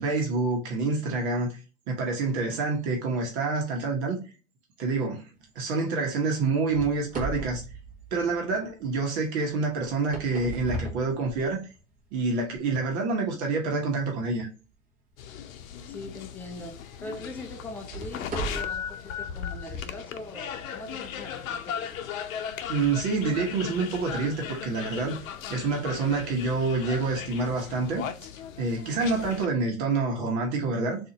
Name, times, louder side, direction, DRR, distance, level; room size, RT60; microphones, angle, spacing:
voice 1, 0.0-1.6 1.9-4.2 4.8-5.2 5.5-7.6 8.1-11.6 12.1-14.5 22.7-25.2 25.5-28.0 28.6-31.0, right 3 dB, 50° right, 1.2 m, -27 dB
sound 1, 6.7-8.7 9.8-11.8 12.4-12.6 13.2-13.3 16.0-16.1 16.7-16.8 17.6-18.9, right 3 dB, 20° right, 1.1 m, -37 dB
voice 2, 13.0-13.4 15.9-22.0, left 2 dB, 5° left, 0.5 m, -41 dB
sound 2, 15.2-29.5, left 8 dB, 70° left, 0.7 m, -37 dB
3.9 x 2.7 x 2.8 m
hypercardioid pair, 115°, 41 cm